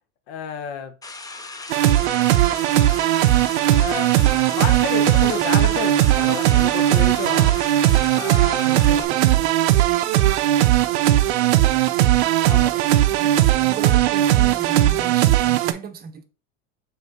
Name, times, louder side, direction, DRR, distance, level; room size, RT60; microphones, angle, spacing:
voice 1, 0.3-0.9 3.7-4.1 4.5-7.5 8.1-8.9 12.5-12.8, left 7 dB, 70° left, 0.9 m, -30 dB
sound 1, 1.0-9.0, left 3 dB, 10° left, 0.4 m, -37 dB
sound 2, 1.7-15.7, right 14 dB, 85° right, 0.5 m, -18 dB
voice 2, 8.6-9.6 13.2-13.3 13.6-16.2, right 6 dB, 30° right, 0.7 m, -36 dB
4.1 x 2.7 x 4.6 m
supercardioid pair, 100°, 33 cm